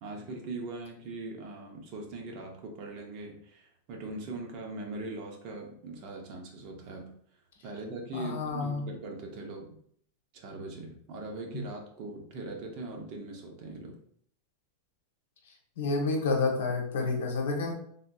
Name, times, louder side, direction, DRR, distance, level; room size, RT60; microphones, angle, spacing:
voice 1, 0.0-7.1 7.6-9.7 10.3-14.0, right 2 dB, 35° right, 1 dB, 0.6 m, -41 dB
voice 2, 8.1-8.8 11.5-11.6 15.8-17.7, left 3 dB, 85° left, 2 dB, 0.8 m, -29 dB
3.4 x 2.6 x 2.2 m, 0.64 s
supercardioid pair, 170°, 0 cm